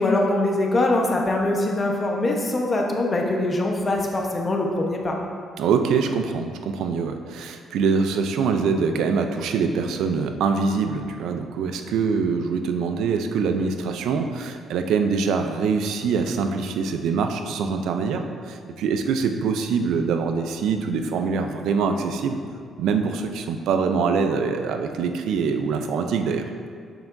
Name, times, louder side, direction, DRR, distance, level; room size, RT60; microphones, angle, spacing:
voice 1, 0.0-5.2, left 2 dB, 30° left, 0 dB, 0.9 m, -23 dB
voice 2, 5.6-22.4 22.8-26.5, right 5 dB, 85° right, 6 dB, 0.4 m, -24 dB
6.9 x 5.9 x 2.6 m, 2.1 s
cardioid pair, 90°, 0 cm